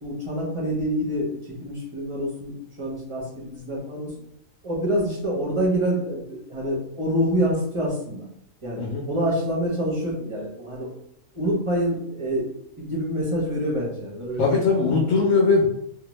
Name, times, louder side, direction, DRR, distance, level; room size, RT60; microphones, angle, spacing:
voice 1, 0.0-4.1 4.6-8.3 8.6-10.9 11.3-12.4 12.8-14.9, equal, 35° right, -4 dB, 0.5 m, -27 dB
voice 2, 14.4-15.7, left 4 dB, 75° left, -3 dB, 0.9 m, -20 dB
2.5 x 2.1 x 3.0 m, 0.72 s
omnidirectional pair, 1.4 m